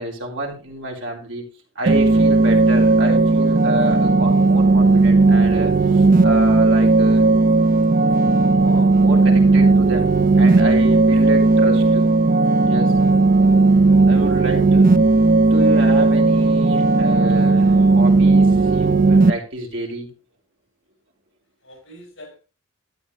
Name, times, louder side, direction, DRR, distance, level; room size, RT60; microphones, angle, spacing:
voice 1, 0.0-1.4 1.8-7.2 8.1-10.1 10.3-12.1 12.7-12.9 14.1-14.9 15.4-20.1, right 1 dB, 60° right, -1 dB, 3.7 m, -29 dB
sound 1, 1.9-19.3, right 3 dB, 40° right, 0.5 m, -15 dB
voice 2, 14.1-14.6 21.6-22.4, left 1 dB, 70° left, 2 dB, 6.0 m, -43 dB
13.0 x 9.2 x 3.2 m, 0.32 s
head